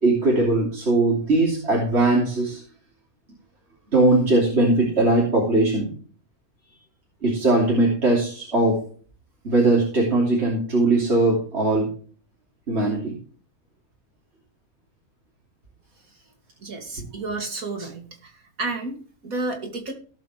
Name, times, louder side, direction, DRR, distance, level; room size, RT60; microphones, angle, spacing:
voice 1, 0.0-2.6 3.9-5.9 7.2-8.8 9.4-11.9 12.7-13.1, right 2 dB, 45° right, -2 dB, 3.3 m, -20 dB
voice 2, 16.6-18.3 18.6-19.9, right 3 dB, 65° right, 2 dB, 3.0 m, -31 dB
17.0 x 7.4 x 3.3 m, 0.43 s
omnidirectional pair, 1.6 m